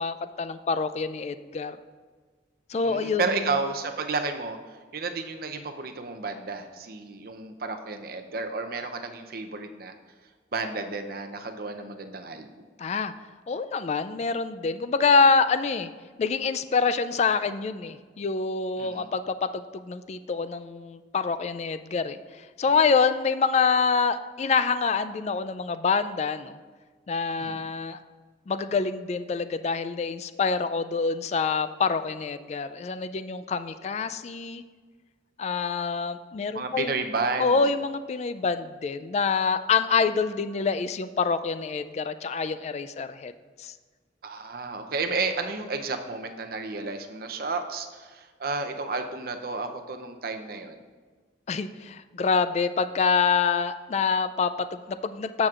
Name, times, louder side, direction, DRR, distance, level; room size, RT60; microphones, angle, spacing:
voice 1, 0.0-1.8 2.7-3.2 12.8-13.1 13.5-15.9 16.2-26.6 27.1-28.0 28.5-34.6 35.4-37.0 37.4-43.3 43.6-43.7 51.5-55.5, left 5 dB, 40° left, 12 dB, 0.3 m, -26 dB
voice 2, 2.7-9.9 10.5-12.6 18.8-19.1 27.4-27.6 36.5-37.7 44.2-50.9, right 3 dB, 55° right, 6 dB, 0.6 m, -32 dB
14.0 x 6.0 x 2.5 m, 1.5 s
head